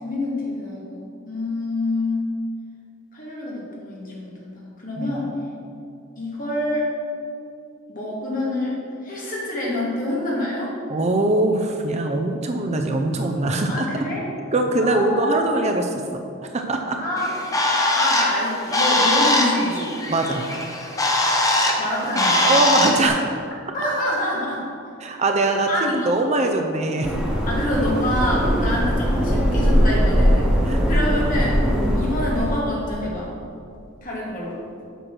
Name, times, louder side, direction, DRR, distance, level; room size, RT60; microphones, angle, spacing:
voice 1, 0.0-2.3 3.1-5.3 6.2-6.9 7.9-10.7 13.7-14.2 14.8-15.5 16.9-17.3 18.0-20.0 21.8-22.5 23.7-24.7 25.7-26.1 27.5-30.6 30.8-31.6 32.0-33.3 34.0-34.6, left 1 dB, 40° left, -5 dB, 2.3 m, -26 dB
voice 2, 10.9-13.9 14.5-17.0 20.1-20.5 22.4-23.4 25.0-25.7 26.1-27.2 30.6-31.6, right 2 dB, 30° right, 4 dB, 0.5 m, -22 dB
Bird, 17.2-23.1, left 1 dB, 15° left, 0.8 m, -21 dB
sound 1, 27.0-32.6, equal, 5° right, 1.0 m, -20 dB
8.1 x 5.8 x 6.2 m, 2.5 s
head